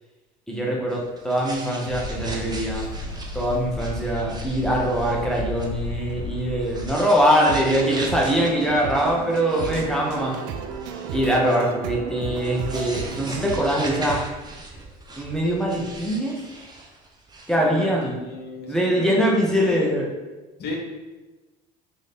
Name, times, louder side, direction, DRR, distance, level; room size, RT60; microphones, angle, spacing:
voice 1, 0.5-2.9 3.3-10.3 11.1-14.2 15.2-16.4 17.5-18.1 18.7-20.1, equal, 5° left, -2 dB, 1.2 m, -23 dB
sound 1, 0.9-5.7 6.1-6.2 6.6-11.7 12.3-17.6, right 2 dB, 20° right, 0.8 m, -39 dB
sound 2, 1.9-6.9, equal, 85° left, 0.9 m, -33 dB
sound 3, 7.4-14.2, right 6 dB, 65° right, 0.4 m, -33 dB
voice 2, 17.6-19.9 20.6-20.8, left 3 dB, 55° left, 0 dB, 1.2 m, -34 dB
3.2 x 3.1 x 4.2 m, 1.2 s
hypercardioid pair, 70°, 21 cm